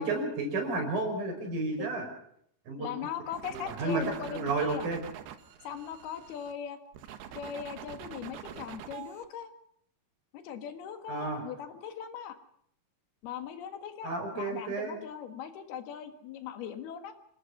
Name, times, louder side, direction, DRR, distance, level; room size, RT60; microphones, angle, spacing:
voice 1, 0.0-2.1 2.7-2.9 3.5-5.0 11.1-11.4 14.0-15.0, right 3 dB, 60° right, 3 dB, 7.0 m, -32 dB
voice 2, 2.8-4.9 5.6-6.8 7.4-9.5 10.3-12.4 13.2-17.1, left 8 dB, 75° left, 8 dB, 3.5 m, -39 dB
sound 1, 3.3-6.5 6.9-9.3, right 10 dB, 80° right, 3.4 m, -45 dB
26.5 x 18.5 x 6.0 m, 0.69 s
omnidirectional pair, 4.6 m